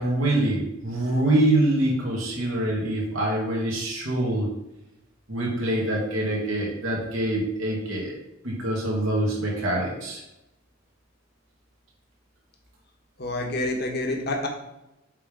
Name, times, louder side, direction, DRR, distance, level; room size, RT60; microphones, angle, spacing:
voice 1, 0.0-4.5 5.3-8.1 8.4-10.2, right 1 dB, 75° right, -3 dB, 2.4 m, -25 dB
voice 2, 13.2-14.5, left 2 dB, 50° left, 2 dB, 1.3 m, -27 dB
7.5 x 3.7 x 5.4 m, 0.93 s
head